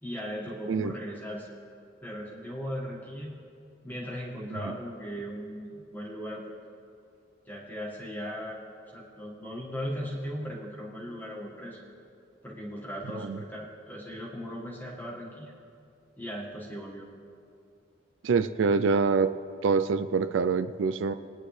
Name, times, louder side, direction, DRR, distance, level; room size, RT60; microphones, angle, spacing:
voice 1, 0.0-1.5 2.0-3.3 3.8-6.5 7.5-8.6 8.9-11.8 12.4-15.5 16.2-17.1, equal, 10° left, -4 dB, 1.5 m, -38 dB
voice 2, 18.2-19.3 19.6-21.1, right 5 dB, 75° right, 11 dB, 0.4 m, -25 dB
20.5 x 9.8 x 3.3 m, 2.6 s
head